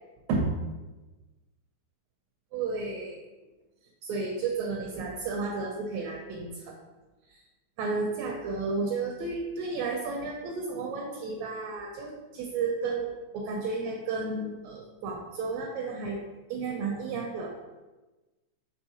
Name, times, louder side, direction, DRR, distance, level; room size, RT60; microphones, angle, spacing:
voice 1, 2.5-3.2 4.0-6.7 7.3-7.4 7.8-16.2 16.5-17.5, right 4 dB, 80° right, 0 dB, 1.6 m, -32 dB
5.5 x 3.0 x 2.7 m, 1.2 s
omnidirectional pair, 3.4 m